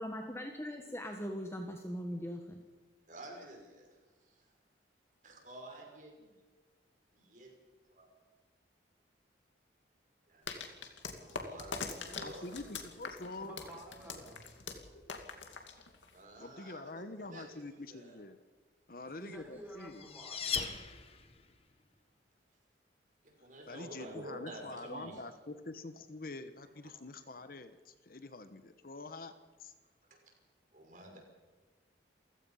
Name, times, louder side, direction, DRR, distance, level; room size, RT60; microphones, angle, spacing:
voice 1, 0.0-2.6, equal, 15° left, 4 dB, 1.3 m, -40 dB
voice 2, 3.1-4.5 5.2-6.3 7.1-7.5 7.9-8.1 10.3-10.8 11.1-12.6 16.1-18.2 23.2-25.2 30.0-30.2 30.7-31.2, right 1 dB, 45° right, 1 dB, 5.8 m, -50 dB
sound 1, 10.5-16.2, left 4 dB, 90° left, 2.5 m, -43 dB
voice 3, 12.2-13.6 16.4-18.4 18.9-20.1 23.7-29.3 29.6-29.7, left 2 dB, 50° left, 10 dB, 1.0 m, -46 dB
voice 4, 13.4-14.4 19.2-20.5, equal, 10° right, -1 dB, 5.8 m, -50 dB
sound 2, 19.5-21.5, left 6 dB, 30° left, 1.5 m, -39 dB
28.5 x 16.5 x 5.6 m, 1.3 s
head